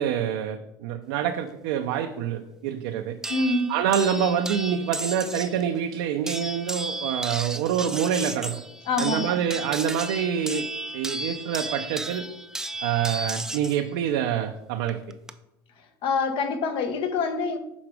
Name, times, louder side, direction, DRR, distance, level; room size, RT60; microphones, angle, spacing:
voice 1, 0.0-3.2 3.7-8.6 9.0-10.7 10.9-12.2 12.8-15.0, right 9 dB, 80° right, 5 dB, 0.5 m, -26 dB
sound 1, 3.2-5.6 6.3-13.8 14.9-15.3, right 2 dB, 5° right, 0.4 m, -34 dB
voice 2, 3.3-3.7 8.9-9.4 16.0-17.6, left 4 dB, 55° left, 7 dB, 0.9 m, -26 dB
6.1 x 3.9 x 4.7 m, 0.89 s
supercardioid pair, 95°, 11 cm